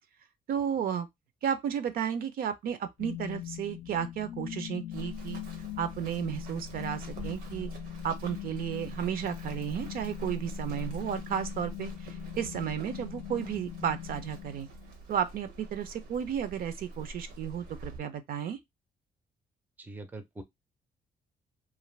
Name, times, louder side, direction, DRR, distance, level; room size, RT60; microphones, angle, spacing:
voice 1, 0.5-1.1 1.4-5.4 5.8-7.7 8.0-14.7 15.1-18.6, right 8 dB, 65° right, 0.5 m, -33 dB
sound 1, 3.0-15.0, left 14 dB, 75° left, 0.5 m, -42 dB
Run, 4.9-18.0, right 1 dB, 85° right, 0.8 m, -44 dB
voice 2, 19.8-20.4, right 2 dB, 10° right, 0.4 m, -43 dB
2.5 x 2.5 x 3.0 m
cardioid pair, 115°, 16 cm